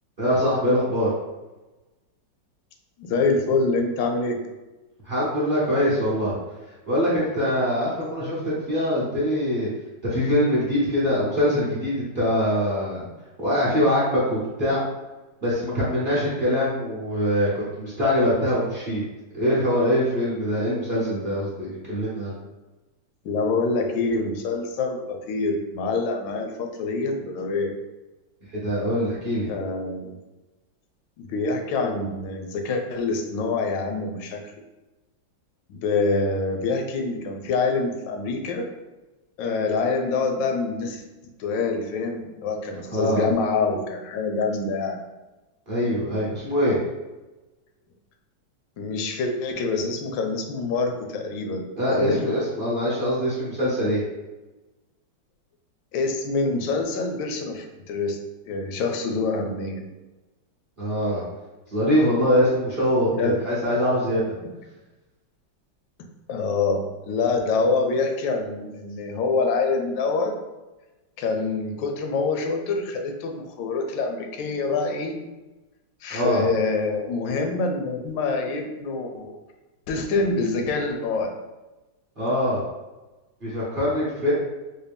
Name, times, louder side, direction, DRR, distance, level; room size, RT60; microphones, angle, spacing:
voice 1, 0.2-1.1 5.0-6.4 6.9-9.7 10.0-13.0 13.4-14.8 15.4-19.0 19.3-22.3 28.5-29.5 39.4-39.7 42.9-43.2 45.7-46.8 51.8-54.0 60.8-61.2 61.7-64.3 76.1-76.4 82.2-82.6 83.4-84.3, equal, 40° right, -9 dB, 0.8 m, -23 dB
voice 2, 3.0-4.4 23.2-27.7 29.5-30.1 31.2-34.4 35.7-38.7 39.4-41.0 41.4-45.0 48.8-52.2 55.9-58.2 58.5-59.8 63.1-63.4 66.3-70.4 71.2-75.2 76.0-79.3 79.9-81.3, left 3 dB, 85° left, 3 dB, 1.3 m, -26 dB
4.0 x 2.2 x 3.4 m, 1.1 s
omnidirectional pair, 2.0 m